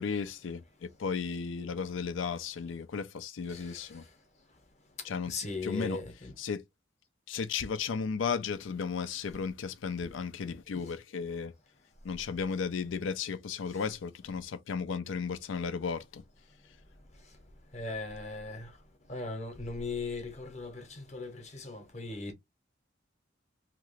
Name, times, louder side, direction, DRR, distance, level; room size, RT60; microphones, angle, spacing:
voice 1, 0.0-4.0 5.0-6.0 6.4-6.6 7.3-11.5 12.0-16.2, left 5 dB, 90° left, 0.4 m, -34 dB
voice 2, 5.3-6.3 17.7-18.7 19.1-22.3, left 3 dB, 35° left, 0.8 m, -38 dB
2.9 x 2.4 x 3.1 m
head